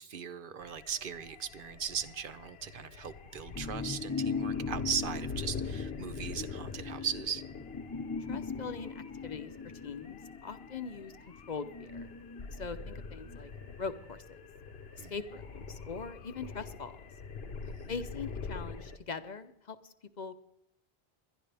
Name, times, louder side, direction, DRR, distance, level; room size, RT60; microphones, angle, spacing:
voice 1, 0.0-7.4 15.0-15.1 17.6-17.9, right 7 dB, 60° right, 14 dB, 0.9 m, -38 dB
sound 1, 0.6-19.0, left 5 dB, 75° left, 1.1 m, -45 dB
sound 2, 3.5-13.4 13.7-13.8, left 5 dB, 25° left, 0.5 m, -39 dB
voice 2, 8.3-9.5 9.8-11.1 11.5-12.1 12.5-13.5 13.8-14.4 15.0-17.0 17.9-20.3, left 5 dB, 50° left, 11 dB, 0.8 m, -41 dB
21.5 x 11.5 x 3.4 m, 0.85 s
omnidirectional pair, 1.0 m